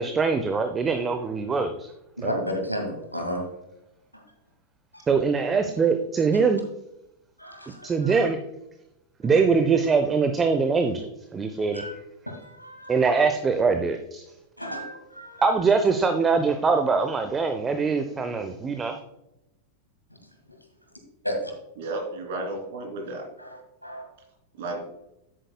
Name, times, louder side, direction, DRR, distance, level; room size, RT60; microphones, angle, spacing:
voice 1, 0.0-1.9 2.2-2.3 5.1-6.7 7.8-8.4 9.2-11.9 12.9-14.2 15.4-19.0, right 5 dB, 20° right, 7 dB, 0.6 m, -23 dB
voice 2, 2.2-3.4 4.9-5.0 7.4-8.2 9.2-9.3 11.7-11.9 12.3-12.9 14.6-15.5 21.2-21.5 23.4-24.0, equal, 90° left, 2 dB, 1.9 m, -33 dB
voice 3, 21.8-23.3 24.5-24.8, right 2 dB, 55° right, 1 dB, 3.0 m, -33 dB
10.0 x 9.0 x 2.2 m, 0.88 s
figure-of-eight pair, 90°, 0 cm